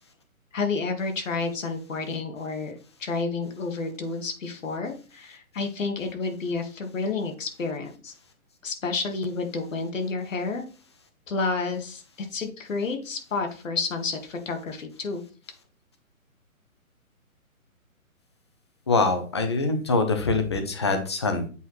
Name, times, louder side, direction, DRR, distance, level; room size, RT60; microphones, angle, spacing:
voice 1, 0.5-8.1 8.6-10.6 11.3-15.2, left 4 dB, 60° left, 5 dB, 1.9 m, -30 dB
voice 2, 18.9-21.5, left 3 dB, 20° left, 7 dB, 0.6 m, -24 dB
8.0 x 4.6 x 3.1 m, 0.37 s
hypercardioid pair, 160°, 42 cm